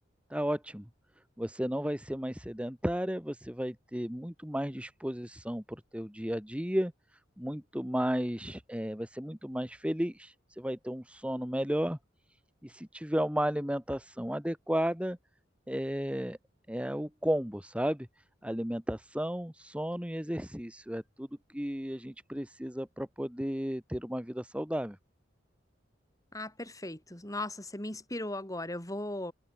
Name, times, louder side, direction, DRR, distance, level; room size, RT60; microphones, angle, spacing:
voice 1, 0.3-0.9 1.4-6.9 7.4-12.0 12.6-15.2 15.7-16.4 16.7-18.1 18.4-21.3 21.5-25.0, equal, 5° right, 2.5 m, -33 dB
voice 2, 26.3-29.3, left 1 dB, 20° left, 4.3 m, -37 dB
head